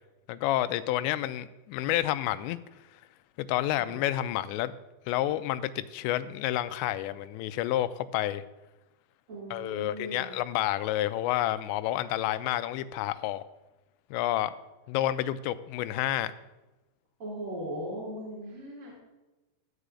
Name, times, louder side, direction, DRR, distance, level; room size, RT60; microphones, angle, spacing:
voice 1, 0.3-2.6 3.4-4.8 5.1-8.4 9.5-13.4 14.1-14.6 14.9-16.3, left 14 dB, 85° left, 12 dB, 2.7 m, -29 dB
voice 2, 3.7-4.2 9.3-10.3 17.2-19.0, right 1 dB, 35° right, -5 dB, 3.2 m, -39 dB
13.5 x 5.0 x 8.2 m, 1.1 s
omnidirectional pair, 5.3 m